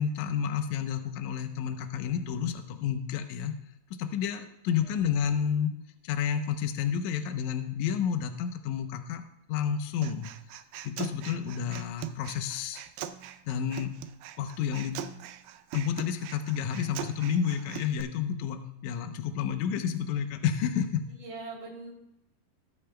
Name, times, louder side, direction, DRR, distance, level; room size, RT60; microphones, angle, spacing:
voice 1, 0.0-3.5 3.9-5.7 6.0-9.2 9.5-10.3 10.8-12.8 13.5-13.9 14.4-15.0 15.7-18.6 18.8-21.0, left 8 dB, 70° left, 7 dB, 2.0 m, -30 dB
Human voice, 10.0-18.0, right 10 dB, 90° right, 2.4 m, -41 dB
voice 2, 11.2-11.8 21.1-21.9, right 3 dB, 65° right, -5 dB, 4.3 m, -44 dB
20.5 x 8.3 x 2.3 m, 0.81 s
omnidirectional pair, 4.0 m